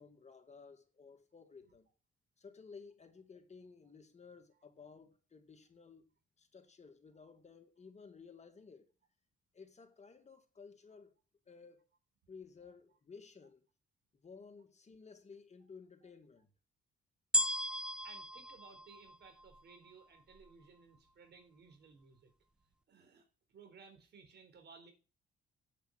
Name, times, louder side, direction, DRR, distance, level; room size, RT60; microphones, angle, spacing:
voice 1, 0.0-1.9 2.4-6.1 6.4-8.9 9.5-11.2 11.5-11.8 12.3-13.7 14.2-16.5, left 5 dB, 35° left, 2.2 m, -56 dB
sound 1, 17.3-19.7 20.4-20.5, equal, 5° right, 0.5 m, -35 dB
voice 2, 18.0-22.3 22.9-24.9, right 5 dB, 60° right, 4.2 m, -59 dB
8.3 x 7.8 x 8.0 m
cardioid pair, 90°, 20 cm